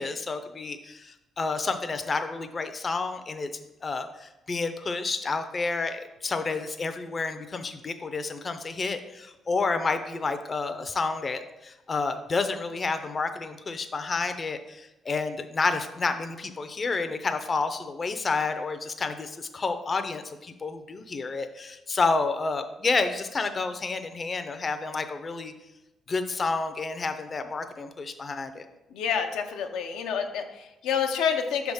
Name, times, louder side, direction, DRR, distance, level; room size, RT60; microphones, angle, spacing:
voice 1, 0.0-3.5 3.8-25.5 26.1-28.7, left 4 dB, 35° left, 8 dB, 0.5 m, -30 dB
voice 2, 28.9-31.7, left 7 dB, 90° left, 5 dB, 0.6 m, -28 dB
5.8 x 3.5 x 5.5 m, 0.95 s
cardioid pair, 90°, 0 cm